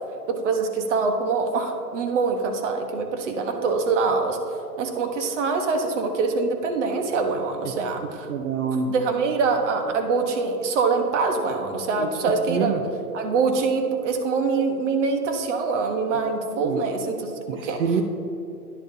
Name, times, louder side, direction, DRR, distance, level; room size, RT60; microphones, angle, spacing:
voice 1, 0.3-4.4 4.8-8.3 8.9-12.8 13.1-17.8, right 4 dB, 50° right, 5 dB, 1.2 m, -24 dB
voice 2, 8.3-8.9 12.0-12.1 12.5-12.8 16.6-16.8 17.5-18.0, right 6 dB, 65° right, 3 dB, 0.9 m, -26 dB
10.5 x 10.5 x 2.8 m, 2.9 s
hypercardioid pair, 150°, 46 cm